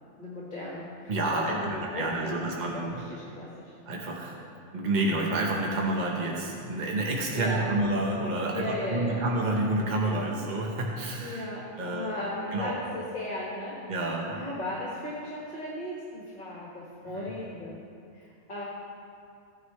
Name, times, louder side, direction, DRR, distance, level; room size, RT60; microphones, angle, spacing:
voice 1, 0.2-2.4 2.9-3.7 7.3-7.7 8.5-9.3 11.2-13.7 14.3-17.8 18.1-18.6, left 1 dB, 40° left, -6 dB, 1.8 m, -36 dB
voice 2, 1.1-3.0 3.9-4.4 4.7-11.4 11.8-12.2 12.5-12.7 13.9-14.3 17.1-17.3, right 2 dB, 40° right, -2 dB, 1.1 m, -29 dB
16.0 x 9.6 x 3.2 m, 2.5 s
omnidirectional pair, 1.3 m